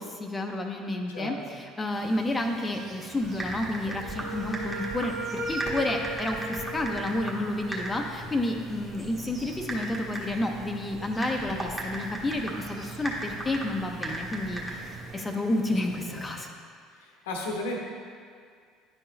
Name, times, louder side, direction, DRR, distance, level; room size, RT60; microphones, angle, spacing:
voice 1, 0.0-5.1 5.5-16.5, left 1 dB, 20° left, 3 dB, 0.6 m, -30 dB
voice 2, 1.1-1.4 16.1-16.2 17.0-17.8, left 2 dB, 70° left, 0 dB, 0.8 m, -34 dB
sound 1, 1.9-16.3, right 3 dB, 35° right, 1.1 m, -48 dB
Typing, 3.2-15.1, right 2 dB, 15° right, 1.5 m, -37 dB
Wind instrument woodwind instrument, 3.8-7.7, right 2 dB, 85° right, 1.7 m, -37 dB
10.5 x 4.4 x 3.2 m, 2.1 s
figure-of-eight pair, 60°, 0 cm